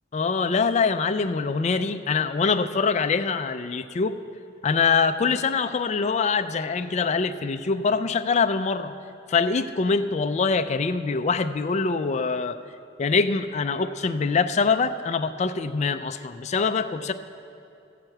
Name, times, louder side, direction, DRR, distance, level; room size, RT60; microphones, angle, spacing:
voice 1, 0.1-4.2 4.6-8.9 9.3-12.6 13.0-17.1, left 4 dB, 35° left, 9 dB, 0.4 m, -24 dB
14.5 x 5.8 x 7.8 m, 2.5 s
head